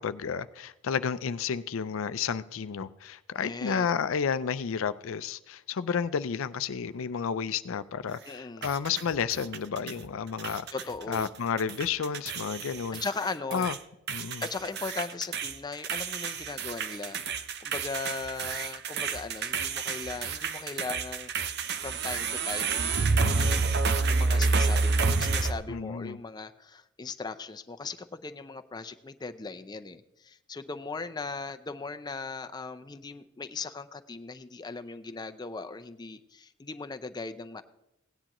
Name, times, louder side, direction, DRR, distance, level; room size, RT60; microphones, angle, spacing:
voice 1, 0.0-10.7 11.1-13.0 13.5-13.8 14.1-14.4 25.7-26.2, left 6 dB, 75° left, 14 dB, 0.4 m, -31 dB
voice 2, 3.4-3.9 8.3-8.6 10.7-11.3 13.0-13.7 14.4-17.2 17.6-37.6, left 4 dB, 20° left, 9 dB, 0.5 m, -38 dB
sound 1, 8.6-10.1 10.4-11.3 11.6-13.8 14.1-25.5, right 4 dB, 55° right, 0.7 m, -29 dB
17.0 x 9.9 x 3.0 m, 0.88 s
head